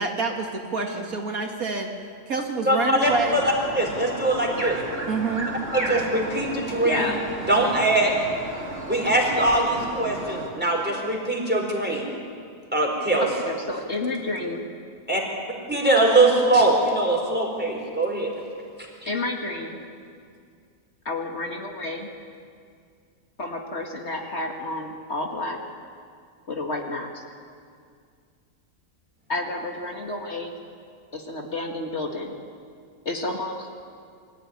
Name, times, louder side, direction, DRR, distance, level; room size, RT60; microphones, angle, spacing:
voice 1, 0.0-1.9 2.3-3.4 5.1-5.5, right 4 dB, 75° right, 2 dB, 2.5 m, -27 dB
voice 2, 2.7-3.4 3.7-4.8 5.7-7.1 7.5-8.1 8.9-12.1 12.7-13.3 15.1-15.2 15.7-18.3, right 2 dB, 5° right, -1 dB, 4.5 m, -22 dB
sound 1, 3.0-10.5, right 1 dB, 40° right, 3.0 m, -34 dB
voice 3, 6.8-7.2 13.2-14.7 19.1-19.8 21.1-22.1 23.4-25.6 26.5-27.2 29.3-30.6 31.1-32.3 33.1-33.7, left 2 dB, 50° left, 1 dB, 2.3 m, -30 dB
24.0 x 15.0 x 9.7 m, 2.2 s
omnidirectional pair, 1.5 m